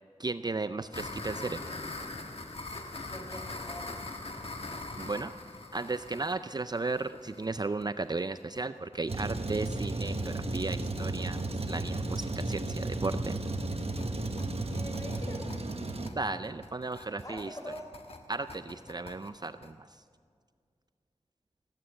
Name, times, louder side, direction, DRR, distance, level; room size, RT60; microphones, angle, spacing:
voice 1, 0.2-1.7 5.0-5.3 5.7-13.4 16.1-17.6 18.3-19.9, right 3 dB, 35° right, 12 dB, 0.4 m, -35 dB
sound 1, 0.9-8.6 8.9-9.0 9.3-9.4 9.7-9.8 10.1-10.3 10.6-19.7, left 2 dB, 55° left, 1.4 m, -43 dB
voice 2, 3.0-3.9 14.7-15.5 17.2-17.9, equal, 25° left, 2 dB, 4.1 m, -43 dB
Truck, 9.1-16.1, right 2 dB, 55° right, 1.1 m, -34 dB
19.0 x 9.2 x 7.6 m, 2.1 s
cardioid pair, 40°, 12 cm